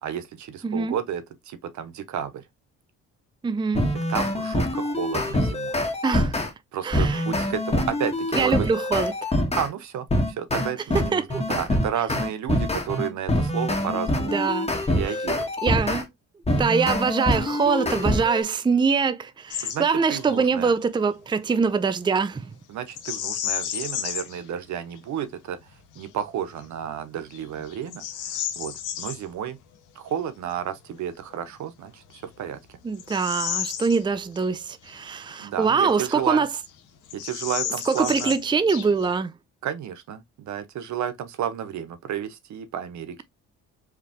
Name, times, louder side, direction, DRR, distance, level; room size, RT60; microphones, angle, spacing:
voice 1, 0.0-2.4 4.1-5.8 6.7-8.7 9.5-14.4 14.9-15.5 19.6-20.7 22.7-25.6 26.0-29.6 29.9-32.6 35.4-36.5 37.1-38.3 39.6-43.2, right 9 dB, 70° right, 0.9 m, -32 dB
voice 2, 0.6-1.0 3.4-3.9 6.0-6.4 6.8-7.2 8.4-9.1 11.1-11.3 14.2-14.7 15.6-16.1 16.6-22.4 32.8-36.5 37.9-39.3, right 5 dB, 15° right, 0.5 m, -23 dB
sound 1, 3.7-6.5 6.9-9.7 10.1-16.0 16.5-18.4, left 1 dB, 20° left, 1.5 m, -25 dB
Bird vocalization bird call bird song, 19.5-19.8 20.1-20.4 22.9-24.4 25.0-25.1 25.7-26.1 26.6-26.8 27.3-29.2 31.3-31.4 32.1-34.5 34.8-34.9 35.6-36.4 36.7-36.8 37.1-39.2, left 10 dB, 85° left, 1.0 m, -32 dB
4.8 x 3.4 x 3.0 m
cardioid pair, 90°, 30 cm